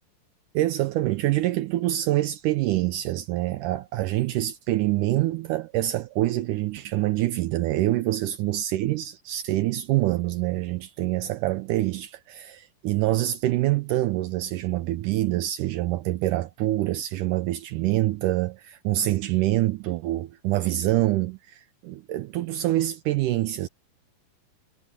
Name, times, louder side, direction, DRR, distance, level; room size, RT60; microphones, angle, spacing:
voice 1, 0.5-23.7, right 15 dB, 80° right, 1.9 m, -25 dB
omnidirectional pair, 4.2 m